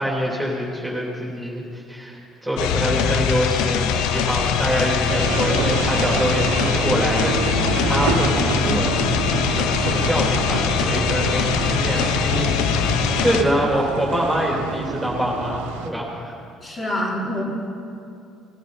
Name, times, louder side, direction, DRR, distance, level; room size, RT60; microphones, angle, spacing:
voice 1, 0.0-9.0 9.5-16.3, equal, 5° right, -4 dB, 3.3 m, -25 dB
sound 1, 2.6-13.4, left 7 dB, 65° left, 0.8 m, -22 dB
sound 2, 5.1-15.9, right 5 dB, 70° right, 1.0 m, -27 dB
voice 2, 16.6-17.4, equal, 30° left, -4 dB, 4.3 m, -26 dB
20.0 x 15.0 x 4.2 m, 2.5 s
figure-of-eight pair, 55°, 0 cm